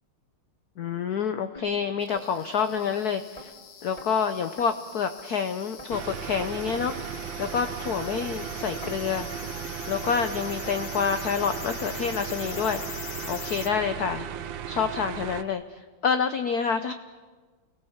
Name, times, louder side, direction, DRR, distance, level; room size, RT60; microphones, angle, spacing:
voice 1, 0.8-3.5 3.8-9.3 9.9-14.3 14.7-16.9, left 6 dB, 60° left, 8 dB, 1.0 m, -28 dB
sound 1, 1.6-1.7 2.2-2.3 2.8-2.9 3.4-3.5 4.0-4.1 4.6-4.7 5.2-5.3 5.8-5.9 6.4-6.5 7.0-7.1 7.6-7.7 8.2-8.3 8.8-9.0 9.4-9.6 10.0-10.1 10.6-10.8 11.2-11.4 11.9-12.0 12.5-12.6 13.1-13.2 13.7-13.8 14.3-14.4, equal, 15° left, 2.6 m, -45 dB
sound 2, 2.0-13.7, left 8 dB, 85° left, 2.2 m, -43 dB
sound 3, 5.9-15.4, right 8 dB, 65° right, 1.5 m, -36 dB
29.0 x 17.5 x 7.2 m, 1.4 s
omnidirectional pair, 2.4 m